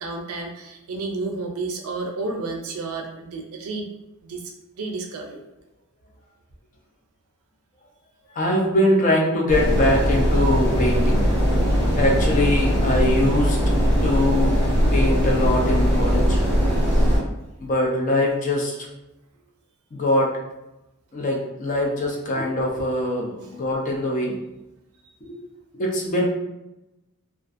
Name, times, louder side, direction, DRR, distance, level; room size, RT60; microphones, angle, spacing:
voice 1, 0.0-3.9 4.2-4.5 4.8-5.4, right 3 dB, 75° right, 2 dB, 0.4 m, -31 dB
voice 2, 8.4-11.3 12.0-13.6 14.0-14.6 14.9-16.6 17.6-18.8 19.9-20.3 21.1-24.3 25.2-25.4 25.7-26.3, left 1 dB, 35° left, -1 dB, 0.4 m, -22 dB
sound 1, 9.5-17.2, equal, 10° left, 1.0 m, -20 dB
2.4 x 2.2 x 2.5 m, 0.95 s
head